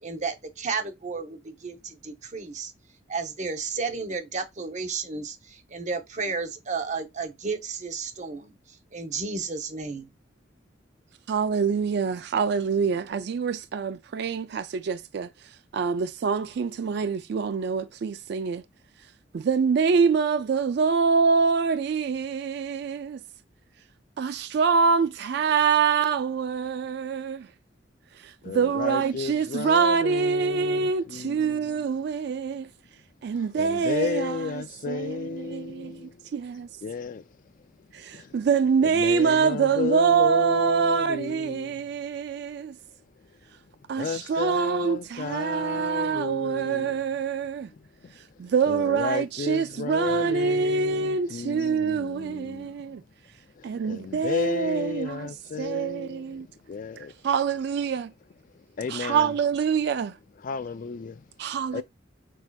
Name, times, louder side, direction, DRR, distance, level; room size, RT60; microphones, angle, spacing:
voice 1, 0.0-2.7 3.1-8.6 8.9-10.1, right 4 dB, 40° right, 0.7 m, -32 dB
voice 2, 11.3-18.6 19.3-23.2 24.2-27.5 28.1-32.7 33.2-36.7 37.9-42.8 43.9-47.7 48.2-53.0 53.6-55.3 55.6-56.5 57.0-58.1 58.9-60.2 61.4-61.8, right 6 dB, 60° right, 0.3 m, -25 dB
voice 3, 28.4-31.7 33.6-36.2 36.8-37.2 38.1-38.3 38.8-41.8 44.0-46.9 48.0-48.1 48.7-52.7 53.6-57.1 58.8-59.3 60.4-61.2 61.7-61.8, left 5 dB, 45° left, 0.3 m, -33 dB
6.2 x 2.7 x 2.3 m
head